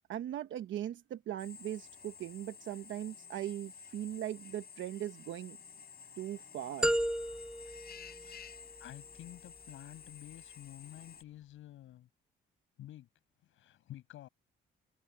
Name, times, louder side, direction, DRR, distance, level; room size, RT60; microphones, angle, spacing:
voice 1, 0.1-5.6 6.2-6.9, right 12 dB, 75° right, 1.1 m, -39 dB
Drill, 1.4-11.2, left 7 dB, 50° left, 4.5 m, -52 dB
sound 1, 6.8-8.9, right 1 dB, 5° right, 0.7 m, -34 dB
voice 2, 8.8-12.1 12.8-13.1 13.4-14.3, left 13 dB, 85° left, 7.4 m, -50 dB
cardioid pair, 90°, 20 cm